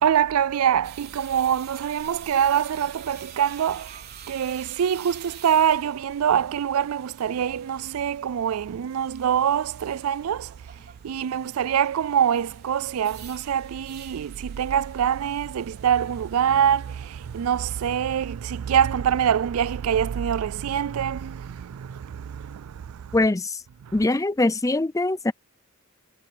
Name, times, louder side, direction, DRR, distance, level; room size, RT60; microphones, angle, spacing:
voice 1, 0.0-10.6 11.0-23.1, right 8 dB, 75° right, 0.4 m, -24 dB
sound 1, 0.8-18.0, right 9 dB, 45° right, 4.4 m, -48 dB
voice 2, 23.1-23.6 23.9-25.3, left 2 dB, 15° left, 0.5 m, -22 dB
head